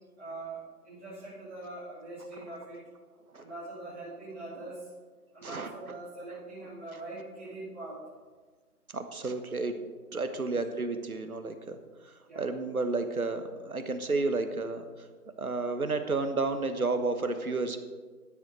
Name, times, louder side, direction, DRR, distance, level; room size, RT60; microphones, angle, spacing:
voice 1, 0.2-2.8 3.4-4.9 5.3-8.0 10.4-10.6 12.3-12.4, right 2 dB, 10° right, -15 dB, 3.3 m, -42 dB
voice 2, 8.9-9.8 10.1-11.8 12.4-14.8 15.4-17.8, right 3 dB, 65° right, 8 dB, 1.4 m, -31 dB
13.0 x 9.6 x 4.4 m, 1.4 s
figure-of-eight pair, 180°, 46 cm